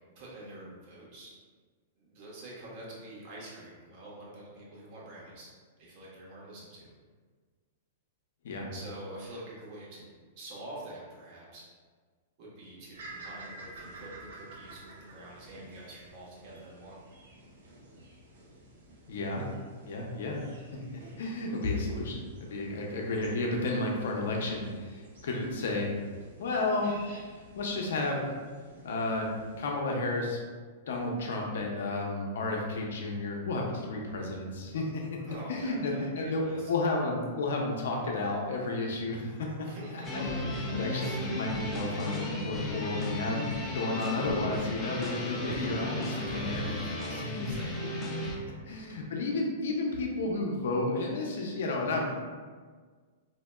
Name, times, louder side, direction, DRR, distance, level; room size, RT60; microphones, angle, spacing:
voice 1, 0.1-1.3 2.0-5.5 5.8-6.9 8.7-11.6 12.4-17.0 35.2-36.7 39.6-40.6 41.0-41.2 45.5-47.8 48.7-48.8, right 1 dB, 45° right, -5 dB, 1.1 m, -46 dB
sound 1, 12.9-29.7, right 2 dB, 75° right, 1.0 m, -52 dB
voice 2, 19.1-19.4 19.9-20.4 21.2-25.9 26.4-26.9 27.6-28.3 28.8-30.4 30.9-39.5 39.9-46.7 48.7-52.1, left 2 dB, 75° left, 0 dB, 0.7 m, -32 dB
sound 2, 40.0-48.4, left 1 dB, 15° left, 0.6 m, -34 dB
4.0 x 2.8 x 2.3 m, 1.5 s
hypercardioid pair, 150°, 0 cm